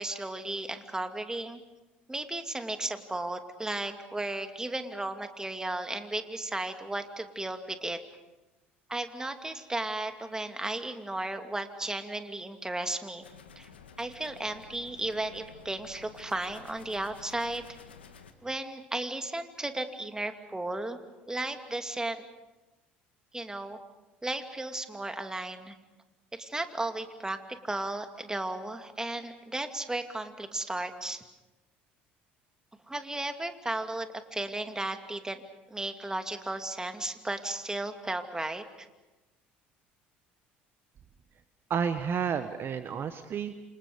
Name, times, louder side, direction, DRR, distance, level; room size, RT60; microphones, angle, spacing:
voice 1, 0.0-1.6 2.1-8.0 8.9-13.3 13.6-13.7 14.0-17.7 18.4-21.0 21.3-22.2 23.3-23.8 24.2-25.7 26.3-31.2 32.9-35.4 35.7-38.9, right 2 dB, 10° right, 7 dB, 2.6 m, -35 dB
sound 1, 13.2-18.3, left 6 dB, 85° left, 2.0 m, -52 dB
voice 2, 41.7-43.7, right 7 dB, 40° right, 10 dB, 1.3 m, -31 dB
28.5 x 27.0 x 5.3 m, 1.1 s
hypercardioid pair, 65°, 6 cm